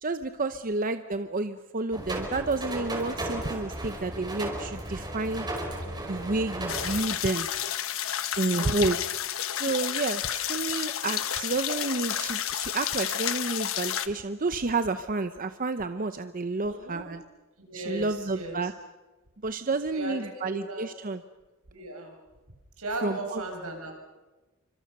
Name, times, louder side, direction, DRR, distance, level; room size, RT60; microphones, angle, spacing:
voice 1, 0.0-5.5 6.1-7.5 8.4-9.0 9.6-17.2 17.7-18.7 19.4-21.2 23.0-23.4, right 3 dB, 40° right, 10 dB, 0.8 m, -30 dB
sound 1, 1.9-7.0, right 1 dB, 20° right, 5.3 m, -35 dB
sound 2, 6.7-14.1, left 10 dB, 65° left, 1.2 m, -31 dB
voice 2, 8.5-9.0 16.6-17.0 17.6-18.7 19.9-20.9 21.7-22.1 22.8-23.9, right 1 dB, 80° right, 2 dB, 6.7 m, -37 dB
29.0 x 25.5 x 6.7 m, 1.2 s
head